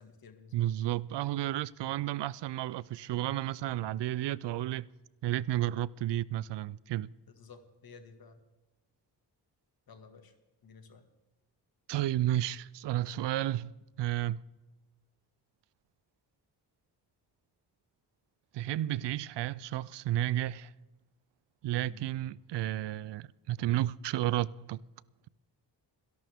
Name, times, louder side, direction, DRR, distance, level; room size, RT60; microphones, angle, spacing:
voice 1, 0.0-0.7 5.7-5.8 7.3-8.4 9.9-10.4 10.6-11.0 21.7-22.4, left 5 dB, 55° left, 2.0 m, -54 dB
voice 2, 0.5-4.9 5.2-7.1 11.9-13.7 14.0-14.4 18.5-20.7 21.6-24.8, right 13 dB, 75° right, 0.5 m, -32 dB
29.5 x 11.5 x 3.6 m
cardioid pair, 100°, 42 cm